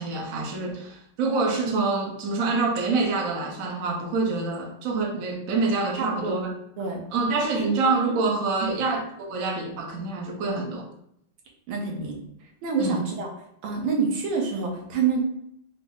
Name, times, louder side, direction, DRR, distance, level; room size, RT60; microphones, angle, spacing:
voice 1, 0.0-6.5 7.1-10.9 12.8-13.0, right 3 dB, 60° right, 0 dB, 0.9 m, -26 dB
voice 2, 6.0-6.5 6.8-7.1 7.6-7.7 8.6-8.7 11.7-12.2 12.6-13.3 13.6-15.3, right 5 dB, 80° right, 0 dB, 1.8 m, -27 dB
5.3 x 2.1 x 3.5 m, 0.74 s
omnidirectional pair, 2.4 m